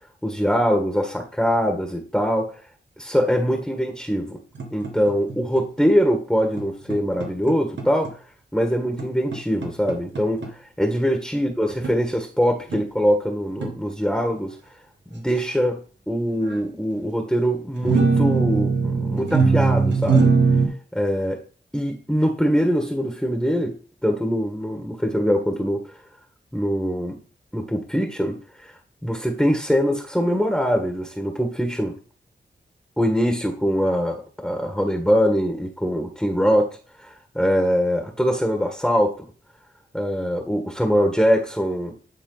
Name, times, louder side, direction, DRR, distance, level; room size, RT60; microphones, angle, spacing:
voice 1, 0.2-2.5 3.0-4.4 4.7-8.1 8.5-10.4 10.8-14.6 15.1-20.3 20.9-21.4 21.7-23.7 24.0-25.8 26.5-27.1 27.5-28.7 29.0-31.9 33.0-39.3 39.9-41.9, equal, 5° left, 3 dB, 1.7 m, -23 dB
sound 1, 4.5-5.6 6.6-6.7 6.9-8.1 9.0-10.5 11.7-11.9 12.7-12.8 13.6-13.7 16.3-16.6 17.8-20.7, right 4 dB, 80° right, 1.7 m, -21 dB
10.5 x 3.9 x 4.0 m, 0.39 s
cardioid pair, 45°, 19 cm